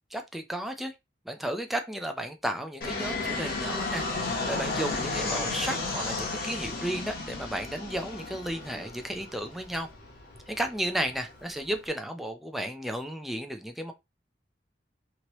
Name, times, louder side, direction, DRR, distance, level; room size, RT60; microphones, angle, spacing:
voice 1, 0.1-0.9 1.3-9.9 10.5-13.9, right 1 dB, ahead, 0.4 m, -33 dB
Fixed-wing aircraft airplane, 2.8-11.8, left 3 dB, 55° left, 1.0 m, -34 dB
3.0 x 2.8 x 2.9 m
head